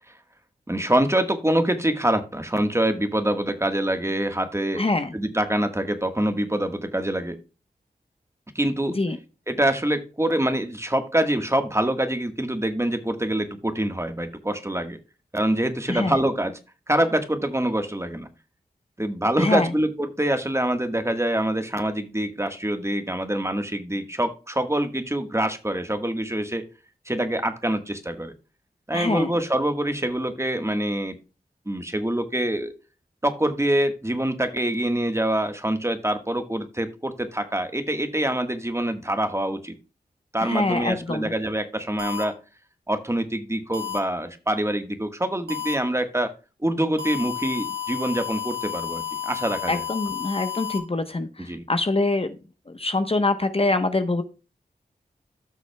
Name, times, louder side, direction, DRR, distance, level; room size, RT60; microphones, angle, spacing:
voice 1, 0.7-4.8 5.1-7.4 8.5-9.0 9.5-15.0 15.3-16.6 16.9-18.3 19.0-26.6 27.0-28.3 28.9-31.2 31.6-32.7 33.2-39.8 40.3-42.3 42.9-46.3 46.6-49.9 51.4-51.6, right 1 dB, 15° right, 8 dB, 1.4 m, -25 dB
voice 2, 4.8-5.1 9.0-9.2 15.9-16.2 19.4-19.7 28.9-29.3 40.4-41.3 49.7-52.4 52.7-54.2, left 2 dB, 35° left, 9 dB, 1.0 m, -24 dB
sound 1, 42.0-42.2 43.7-44.0 45.5-45.7 47.0-50.8, left 9 dB, 75° right, 1.9 m, -31 dB
15.0 x 6.2 x 2.2 m, 0.33 s
cardioid pair, 45°, 17 cm